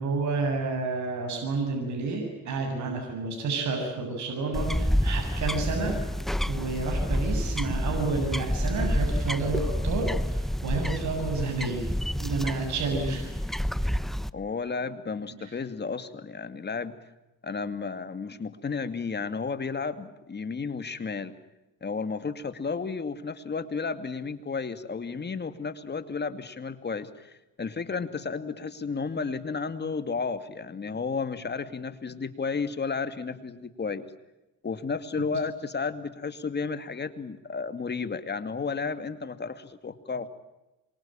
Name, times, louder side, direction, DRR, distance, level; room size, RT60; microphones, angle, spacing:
voice 1, 0.0-5.9 6.5-11.9 12.2-13.3 15.4-15.5, right 3 dB, 70° right, 2 dB, 7.7 m, -30 dB
sound 1, 4.5-14.3, equal, ahead, 0.9 m, -28 dB
voice 2, 14.3-16.9 17.4-21.3 21.8-34.1 34.6-40.3, left 5 dB, 35° left, 10 dB, 2.5 m, -32 dB
27.0 x 24.0 x 9.0 m, 1.0 s
cardioid pair, 90°, 30 cm